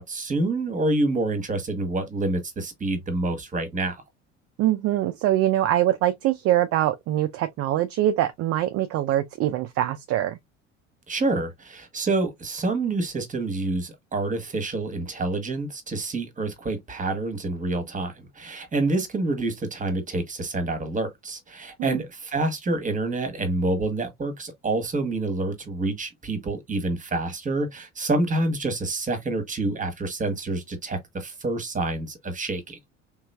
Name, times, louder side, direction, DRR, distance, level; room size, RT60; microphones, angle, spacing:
voice 1, 0.0-4.0 11.1-32.8, right 2 dB, 20° right, 1.2 m, -27 dB
voice 2, 4.6-10.4 21.8-22.0, right 13 dB, 40° right, 0.5 m, -23 dB
3.6 x 3.0 x 2.2 m
hypercardioid pair, 65°, 36 cm